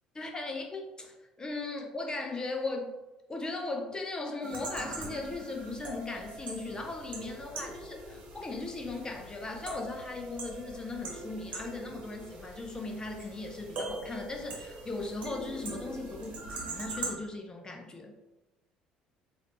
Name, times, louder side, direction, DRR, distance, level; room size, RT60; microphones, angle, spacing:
voice 1, 0.2-2.9 3.3-16.3 16.6-18.1, left 2 dB, 20° left, 2 dB, 0.8 m, -38 dB
sound 1, 4.4-17.1, right 2 dB, 45° right, 1.2 m, -42 dB
3.8 x 2.7 x 3.5 m, 1.0 s
figure-of-eight pair, 55°, 4 cm